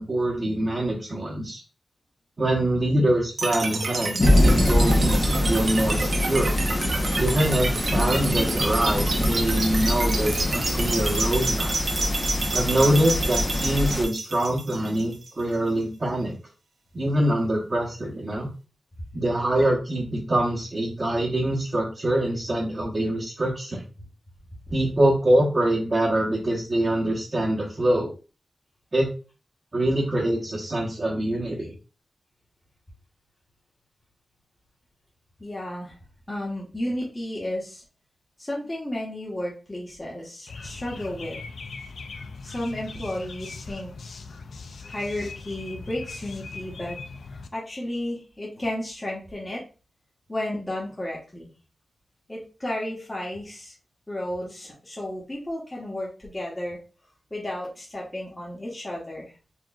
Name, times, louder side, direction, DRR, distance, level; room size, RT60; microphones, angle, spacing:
voice 1, 0.0-1.6 2.4-6.5 7.2-11.7 12.5-16.3 16.9-18.5 19.1-23.8 24.7-28.1 28.9-29.1 29.7-31.7, right 1 dB, 45° right, -5 dB, 0.9 m, -24 dB
sound 1, 3.4-15.4, right 3 dB, 75° right, 0.6 m, -29 dB
sound 2, 4.2-14.0, left 1 dB, 40° left, 0.8 m, -24 dB
voice 2, 35.4-35.9 36.3-37.8 38.4-41.4 42.4-43.9 44.9-47.0 47.5-49.6 50.3-51.5 52.3-53.7 54.1-56.8 57.3-59.3, left 1 dB, 25° left, -4 dB, 1.1 m, -33 dB
sound 3, 40.5-47.5, left 4 dB, 85° left, 0.4 m, -40 dB
4.4 x 3.0 x 2.3 m, 0.34 s
cardioid pair, 65°, 0 cm